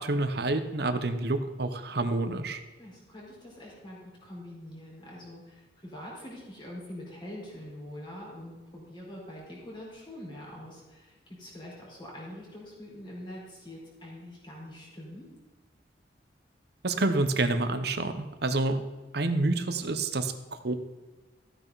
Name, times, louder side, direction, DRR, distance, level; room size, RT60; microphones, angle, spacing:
voice 1, 0.0-2.6 16.8-18.8 19.1-20.7, right 2 dB, 65° right, 9 dB, 1.0 m, -28 dB
voice 2, 2.8-15.3, left 1 dB, 30° left, -4 dB, 4.6 m, -44 dB
14.0 x 9.1 x 4.1 m, 1.2 s
head